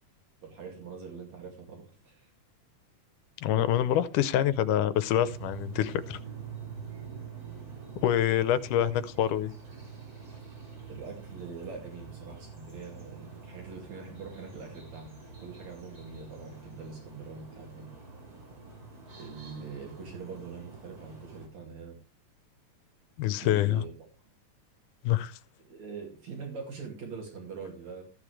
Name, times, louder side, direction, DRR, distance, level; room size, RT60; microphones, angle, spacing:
voice 1, 0.4-2.3 10.9-15.2 15.4-17.9 19.2-22.0 23.2-23.9 25.7-28.0, right 5 dB, 60° right, 3.5 m, -43 dB
voice 2, 3.4-6.2 8.0-9.5 23.2-23.8 25.0-25.4, left 11 dB, 80° left, 2.2 m, -26 dB
sound 1, 5.2-21.5, right 5 dB, 30° right, 3.4 m, -46 dB
14.0 x 8.8 x 3.2 m
omnidirectional pair, 3.7 m